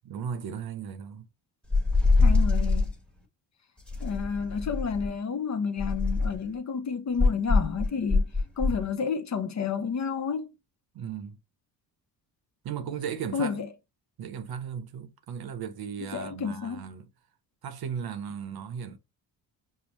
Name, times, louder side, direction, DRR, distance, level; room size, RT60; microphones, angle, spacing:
voice 1, 0.0-1.3 10.9-11.4 12.6-13.5 14.2-17.1 17.6-19.0, right 7 dB, 55° right, 0.8 m, -36 dB
sound 1, 1.7-2.9 3.9-5.1 5.8-6.5 7.2-8.8, left 3 dB, ahead, 1.2 m, -24 dB
voice 2, 2.2-2.9 4.0-8.3 8.6-10.5 13.3-13.7 16.0-16.8, left 6 dB, 40° left, 0.7 m, -30 dB
5.5 x 2.1 x 3.0 m
supercardioid pair, 70°, 44 cm